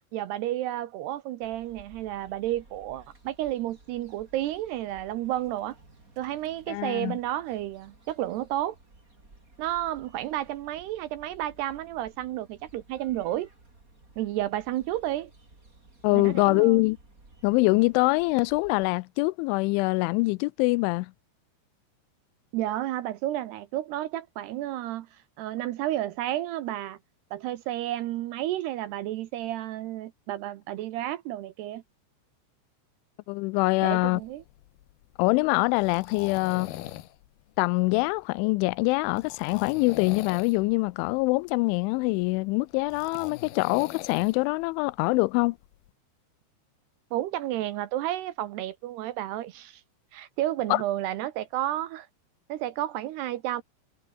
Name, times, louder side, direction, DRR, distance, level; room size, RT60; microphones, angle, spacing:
voice 1, 0.1-5.8 6.2-8.8 9.6-13.5 14.2-15.3 16.1-16.8 22.5-25.1 25.4-27.0 27.3-31.8 33.8-34.4 47.1-49.8 50.1-52.1 52.5-53.6, right 14 dB, 75° right, 2.7 m, -31 dB
sound 1, 1.4-18.9, right 2 dB, 20° right, 5.0 m, -56 dB
voice 2, 6.7-7.2 16.0-17.0 17.4-21.1 33.3-34.2 35.2-36.7 37.6-45.6 50.7-50.8, left 24 dB, 85° left, 3.0 m, -24 dB
sound 2, 33.8-45.9, left 15 dB, 70° left, 2.6 m, -43 dB
omnidirectional pair, 5.4 m